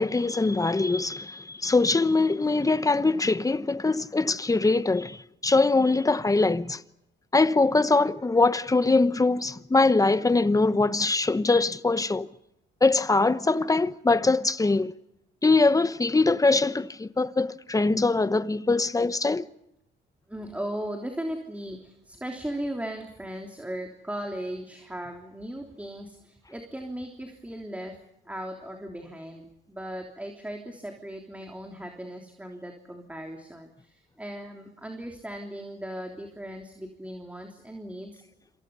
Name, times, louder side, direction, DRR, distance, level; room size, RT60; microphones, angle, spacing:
voice 1, 0.0-6.8 7.3-12.3 12.8-14.9 15.4-19.5, left 3 dB, 15° left, 1.0 m, -22 dB
voice 2, 20.3-38.2, right 1 dB, 5° right, 3.4 m, -37 dB
27.5 x 27.0 x 5.6 m
cardioid pair, 90°, 20 cm